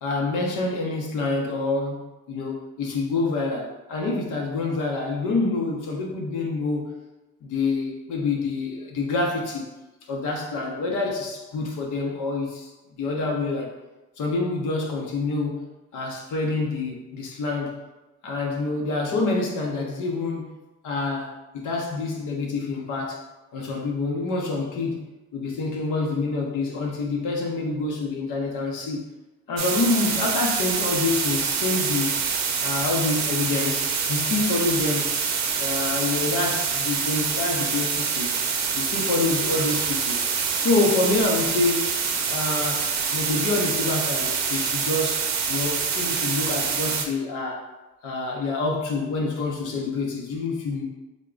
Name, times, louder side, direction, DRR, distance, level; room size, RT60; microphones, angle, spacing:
voice 1, 0.0-6.9 7.4-9.6 10.1-12.7 13.0-13.7 14.2-17.8 18.2-20.5 20.8-23.2 23.5-25.0 25.3-29.0 29.5-32.2 32.6-35.1 35.5-38.4 38.7-40.2 40.6-41.8 42.3-47.7 48.0-50.8, left 3 dB, 85° left, -1 dB, 0.8 m, -27 dB
sound 1, 29.6-47.1, right 6 dB, 65° right, 0.6 m, -26 dB
3.5 x 2.2 x 3.7 m, 1.0 s
cardioid pair, 90°, 30 cm